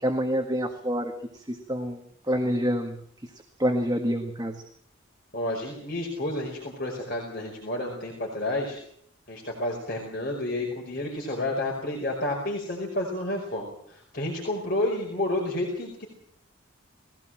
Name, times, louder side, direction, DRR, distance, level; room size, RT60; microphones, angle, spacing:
voice 1, 0.0-3.0 3.6-4.6, equal, 20° right, 4 dB, 1.7 m, -27 dB
voice 2, 5.3-8.8 9.3-16.1, left 1 dB, 45° left, -2 dB, 5.2 m, -30 dB
20.5 x 17.0 x 7.7 m, 0.65 s
head